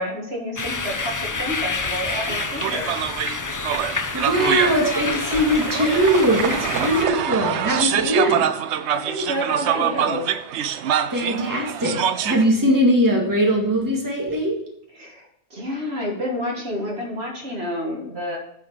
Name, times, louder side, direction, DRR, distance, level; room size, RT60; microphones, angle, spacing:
voice 1, 0.0-2.9 8.9-10.3 15.0-18.4, equal, 70° right, -1 dB, 2.3 m, -29 dB
sound 1, 0.6-7.1, left 4 dB, 30° left, 0.4 m, -28 dB
sound 2, 2.1-12.4, right 9 dB, 85° right, 0.9 m, -25 dB
voice 2, 4.1-8.5 11.1-12.0 12.2-14.6, equal, 15° right, -1 dB, 1.9 m, -20 dB
8.8 x 5.1 x 6.7 m, 0.74 s
omnidirectional pair, 1.1 m